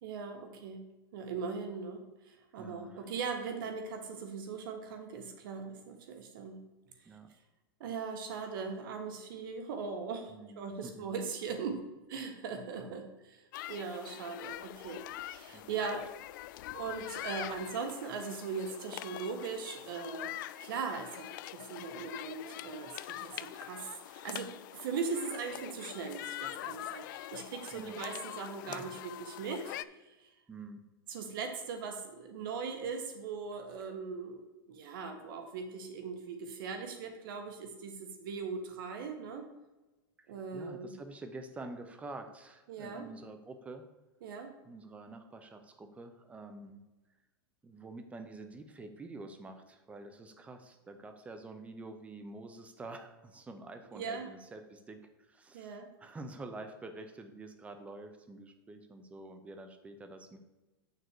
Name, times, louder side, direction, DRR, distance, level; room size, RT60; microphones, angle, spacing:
voice 1, 0.0-0.8 1.1-6.6 7.8-11.7 12.1-16.1 16.7-20.3 20.6-29.7 30.0-30.3 31.1-34.4 34.7-39.4 40.3-40.9 42.7-43.1 44.2-44.5 53.9-54.3 55.5-55.9, right 5 dB, 65° right, 5 dB, 1.5 m, -40 dB
voice 2, 2.6-3.1 7.0-7.3 10.3-11.1 12.7-13.0 15.5-15.6 27.7-28.0 28.7-28.9 30.5-30.8 40.2-43.9 44.6-46.8 47.6-60.4, right 2 dB, 10° right, 7 dB, 0.8 m, -47 dB
sound 1, 13.5-29.8, left 15 dB, 60° left, 0.4 m, -44 dB
8.0 x 6.7 x 4.7 m, 1.1 s
supercardioid pair, 150°, 12 cm